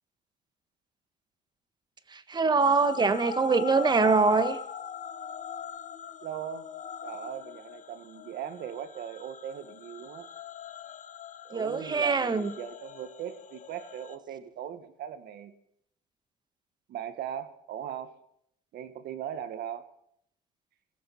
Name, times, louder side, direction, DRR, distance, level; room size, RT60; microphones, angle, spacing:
voice 1, 2.1-4.6 11.5-12.5, right 4 dB, 25° right, 11 dB, 1.5 m, -24 dB
sound 1, 2.6-14.2, left 8 dB, 50° left, 1.3 m, -41 dB
voice 2, 6.2-6.7 7.0-10.3 11.4-15.5 16.9-18.2 18.7-19.9, right 9 dB, 70° right, 10 dB, 1.9 m, -39 dB
20.0 x 16.0 x 4.4 m, 0.71 s
cardioid pair, 110°, 17 cm